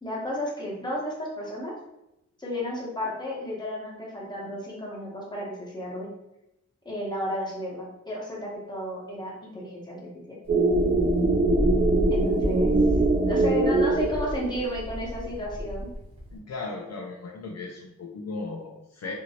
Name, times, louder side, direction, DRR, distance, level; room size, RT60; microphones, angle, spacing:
voice 1, 0.0-1.7 2.4-6.1 6.8-10.4 12.1-12.7 13.3-15.9, equal, 15° left, -5 dB, 0.9 m, -33 dB
Wind, 10.5-16.4, equal, 20° right, 0.8 m, -30 dB
sound 1, 10.5-14.8, right 2 dB, 35° right, 0.4 m, -23 dB
voice 2, 16.3-19.1, left 3 dB, 60° left, -1 dB, 0.4 m, -36 dB
2.9 x 2.6 x 2.8 m, 0.88 s
wide cardioid pair, 120°, 30 cm